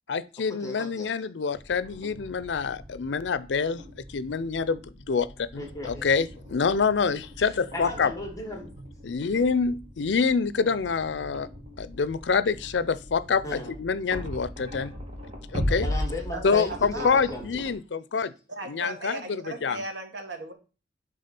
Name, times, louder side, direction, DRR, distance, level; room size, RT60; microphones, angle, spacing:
voice 1, 0.1-3.8 4.1-8.1 9.0-11.5 11.8-14.9 15.5-15.9 16.4-18.3 18.6-19.8, left 5 dB, 75° left, 0.5 m, -26 dB
voice 2, 0.6-1.1 5.6-6.1 7.4-8.7 13.4-13.7 15.8-17.6, left 2 dB, 20° left, 1.5 m, -36 dB
sound 1, 1.5-17.7, equal, 35° right, 1.8 m, -38 dB
voice 3, 16.3-17.2 18.5-20.5, right 2 dB, 80° right, 1.5 m, -37 dB
8.7 x 3.6 x 5.9 m
head